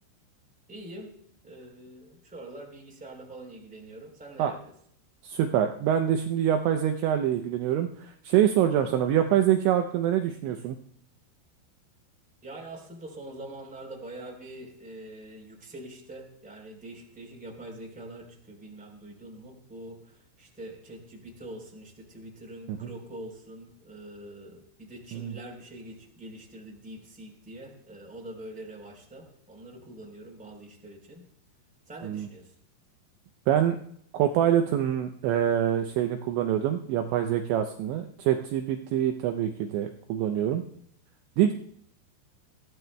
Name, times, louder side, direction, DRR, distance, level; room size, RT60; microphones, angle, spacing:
voice 1, 0.7-1.1 1.4-4.6 12.4-31.2 31.9-32.5, right 1 dB, ahead, 0 dB, 2.5 m, -44 dB
voice 2, 5.2-10.8 22.7-22.9 25.1-25.4 32.0-32.3 33.5-33.8 34.1-40.6 41.4-41.5, right 10 dB, 80° right, 5 dB, 2.7 m, -25 dB
21.5 x 15.5 x 2.2 m, 0.66 s
omnidirectional pair, 5.8 m